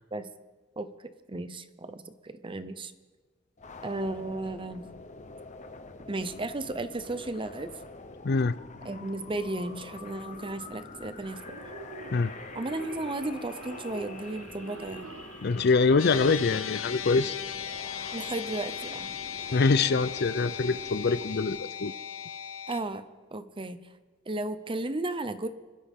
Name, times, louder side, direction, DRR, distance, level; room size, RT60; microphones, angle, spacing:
voice 1, 1.3-2.9 3.8-4.9 6.1-7.7 8.8-11.7 12.5-15.1 18.1-19.1 22.7-23.8 24.3-25.5, right 2 dB, 25° right, 11 dB, 0.8 m, -34 dB
sound 1, 3.6-21.6, left 3 dB, 35° left, 0.9 m, -46 dB
voice 2, 8.2-8.5 12.1-12.3 15.4-17.4 19.5-21.9, left 4 dB, 55° left, 15 dB, 0.5 m, -24 dB
sound 2, 11.2-16.8, right 4 dB, 70° right, 0.7 m, -45 dB
sound 3, 16.0-22.8, left 8 dB, 90° left, 0.9 m, -37 dB
26.0 x 13.0 x 3.7 m, 1.3 s
head